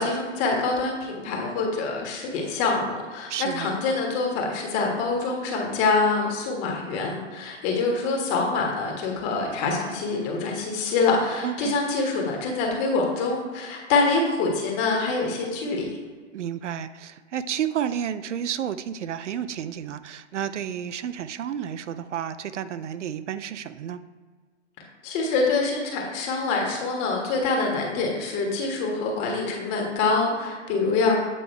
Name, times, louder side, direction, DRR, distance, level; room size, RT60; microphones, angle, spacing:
voice 1, 0.0-15.9 25.0-31.2, left 3 dB, 35° left, 0 dB, 1.5 m, -25 dB
voice 2, 3.3-3.8 11.4-11.8 16.3-24.0, right 9 dB, 75° right, 13 dB, 0.5 m, -31 dB
8.5 x 3.5 x 4.5 m, 1.5 s
hypercardioid pair, 120°, 36 cm